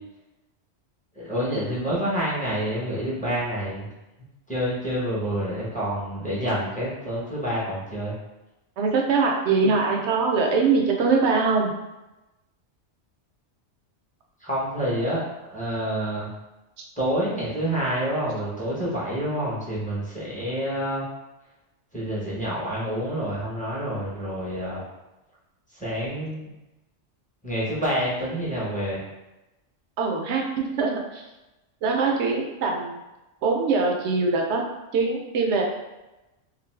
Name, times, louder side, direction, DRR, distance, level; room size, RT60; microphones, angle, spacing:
voice 1, 1.2-3.9 4.5-8.2 14.4-15.2 15.5-16.3 17.0-21.1 21.9-24.8 25.7-26.5 27.4-29.0, equal, 10° left, -8 dB, 0.7 m, -28 dB
voice 2, 8.8-11.7 30.0-31.2 31.8-33.0 33.4-34.6 34.9-35.6, right 4 dB, 70° right, 1 dB, 0.8 m, -22 dB
2.5 x 2.5 x 3.2 m, 1.0 s
omnidirectional pair, 1.2 m